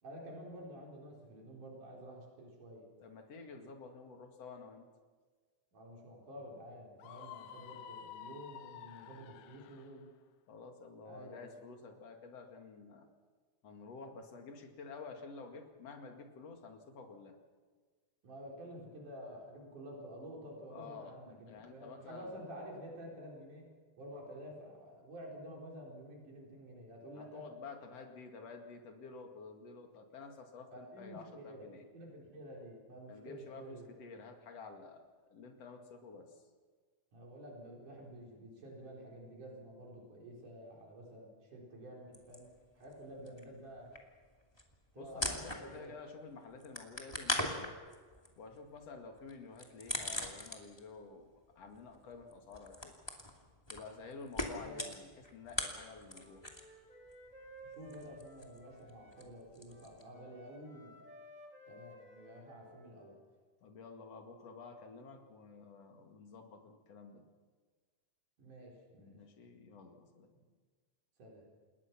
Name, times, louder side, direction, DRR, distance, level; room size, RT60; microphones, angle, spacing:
voice 1, 0.0-2.8 5.7-10.0 11.1-11.5 18.2-23.7 24.0-27.4 30.7-31.7 31.9-33.9 37.1-42.5 42.8-43.9 44.9-45.9 54.5-54.8 57.6-61.0 61.7-63.1 68.4-69.2 70.3-70.4 71.2-71.5, equal, 85° right, -2 dB, 5.8 m, -50 dB
voice 2, 3.0-4.9 10.5-13.1 13.6-17.3 20.7-21.2 21.5-22.4 27.1-31.9 33.1-35.0 35.3-36.3 45.0-47.7 48.4-51.3 51.6-52.9 53.7-56.5 63.6-67.2 69.0-70.3, left 4 dB, 55° left, 3 dB, 3.1 m, -50 dB
Screaming, 7.0-9.9, left 10 dB, 75° left, 2.1 m, -50 dB
sound 1, 42.1-43.0 43.3-46.0 46.3-51.0 51.2-56.8 57.1-60.0, left 1 dB, 10° left, 2.3 m, -41 dB
Wind instrument woodwind instrument, 55.9-59.4 59.7-63.2, equal, 15° right, 4.3 m, -57 dB
28.0 x 21.0 x 6.0 m, 1.5 s
omnidirectional pair, 3.5 m